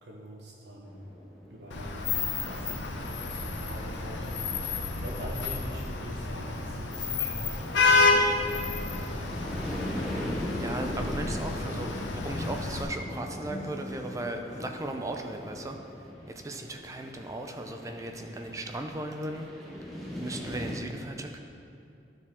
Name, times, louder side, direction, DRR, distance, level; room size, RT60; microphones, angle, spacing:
voice 1, 0.0-1.0 1.5-2.7 3.1-4.3 4.8-8.5, equal, 75° right, -2 dB, 1.1 m, -43 dB
sound 1, 0.8-20.8, equal, ahead, 1.1 m, -41 dB
Vehicle horn car horn honking / Traffic noise roadway noise, 1.7-12.8, left 3 dB, 90° left, 0.7 m, -29 dB
sound 2, 10.4-15.8, left 1 dB, 40° left, 0.6 m, -45 dB
voice 2, 10.6-15.8 16.3-19.5 20.2-21.4, right 1 dB, 20° right, 4 dB, 0.5 m, -37 dB
12.0 x 4.5 x 3.6 m, 2.6 s
head